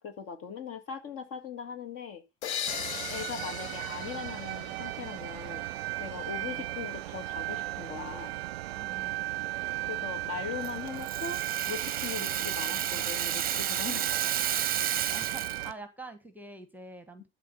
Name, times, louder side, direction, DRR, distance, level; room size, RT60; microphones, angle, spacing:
voice 1, 0.0-2.2 3.1-5.6 6.0-8.4 9.9-11.4 11.7-14.2, left 6 dB, 40° left, 2.0 m, -40 dB
sound 1, 2.4-6.0, left 9 dB, 75° left, 0.8 m, -39 dB
sound 2, 2.7-15.7, right 16 dB, 60° right, 0.6 m, -36 dB
voice 2, 8.7-9.3 15.1-17.3, right 2 dB, 5° right, 1.4 m, -46 dB
Rattle (instrument), 10.6-15.7, right 10 dB, 25° right, 0.9 m, -32 dB
12.0 x 4.0 x 6.9 m
figure-of-eight pair, 75°, 34 cm